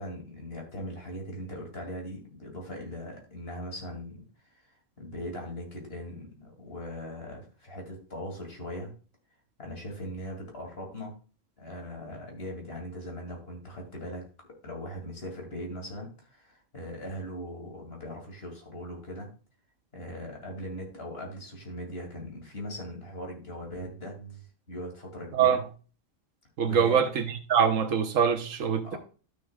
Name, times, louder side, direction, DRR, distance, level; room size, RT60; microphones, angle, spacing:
voice 1, 0.0-4.2 4.7-8.9 9.6-11.1 11.6-14.3 14.6-19.3 19.9-25.6 26.6-27.0 28.8-29.0, equal, 50° left, 2.9 m, -40 dB
voice 2, 26.6-29.0, right 7 dB, 90° right, 1.4 m, -24 dB
12.0 x 6.6 x 2.4 m
omnidirectional pair, 1.3 m